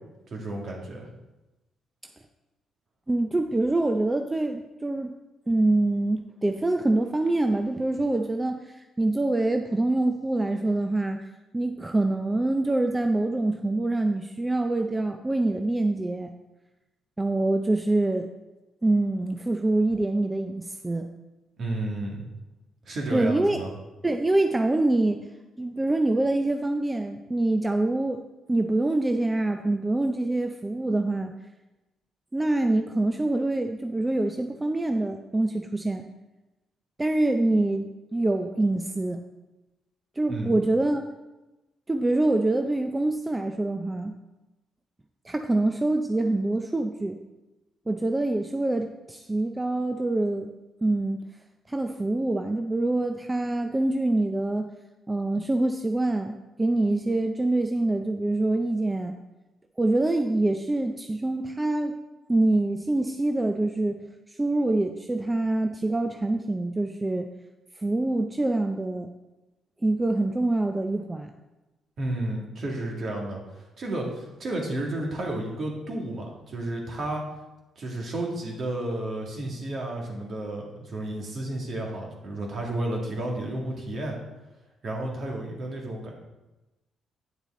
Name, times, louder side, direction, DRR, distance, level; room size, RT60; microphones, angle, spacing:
voice 1, 0.3-1.1 21.6-22.2 22.9-23.7 40.3-40.5 72.0-77.2 77.8-84.2 84.8-86.1, right 1 dB, 55° right, -1 dB, 2.1 m, -32 dB
voice 2, 3.1-5.1 5.5-11.2 11.5-16.3 17.2-18.3 18.8-21.1 23.1-23.6 24.0-25.2 25.6-28.2 28.5-31.3 32.3-36.1 37.0-39.2 40.2-41.0 41.9-44.1 45.2-47.2 47.9-50.5 50.8-51.2 51.7-54.7 55.1-59.1 59.8-62.0 62.3-64.0 64.3-67.3 67.8-69.1 69.8-71.3, right 2 dB, 15° right, 5 dB, 0.5 m, -25 dB
9.2 x 6.8 x 3.8 m, 1.0 s
cardioid pair, 90°, 0 cm